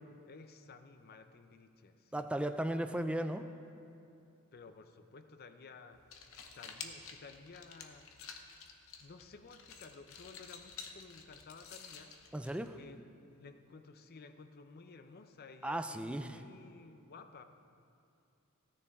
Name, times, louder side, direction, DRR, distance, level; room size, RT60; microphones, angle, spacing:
voice 1, 0.3-2.3 4.5-6.0 6.5-8.1 9.0-12.1 12.7-13.0 13.3-17.4, left 4 dB, 45° left, 8 dB, 0.6 m, -54 dB
voice 2, 2.1-3.5 12.3-12.8 15.6-16.4, right 1 dB, 5° right, 8 dB, 0.4 m, -36 dB
sound 1, 5.9-13.0, left 6 dB, 65° left, 0.9 m, -51 dB
16.0 x 9.8 x 3.6 m, 2.6 s
head